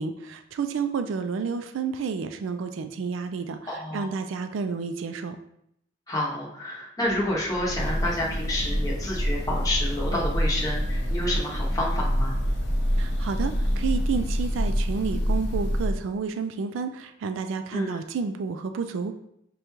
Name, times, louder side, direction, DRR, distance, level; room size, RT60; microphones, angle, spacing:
voice 1, 0.0-3.6 3.9-5.4 13.0-19.1, right 5 dB, 70° right, 8 dB, 0.3 m, -30 dB
voice 2, 3.7-4.1 6.1-12.4 17.7-18.0, left 1 dB, 20° left, -4 dB, 0.8 m, -29 dB
sound 1, 7.0-14.1, right 1 dB, 20° right, 0.9 m, -46 dB
Breathing / Bird, 7.5-16.1, equal, 60° left, 0.5 m, -26 dB
6.4 x 2.3 x 3.0 m, 0.76 s
head